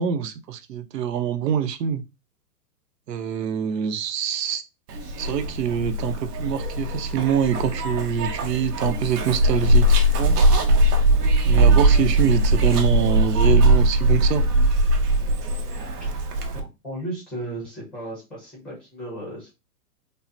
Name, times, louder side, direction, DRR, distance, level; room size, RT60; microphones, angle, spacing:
voice 1, 0.0-2.0 3.1-4.6 5.2-10.4 11.4-14.4, right 9 dB, 90° right, 0.8 m, -25 dB
Zipper (clothing), 4.9-16.6, right 1 dB, 70° right, 1.1 m, -20 dB
voice 2, 16.5-19.5, right 1 dB, ahead, 0.5 m, -35 dB
5.4 x 2.0 x 2.6 m
hypercardioid pair, 165°, 48 cm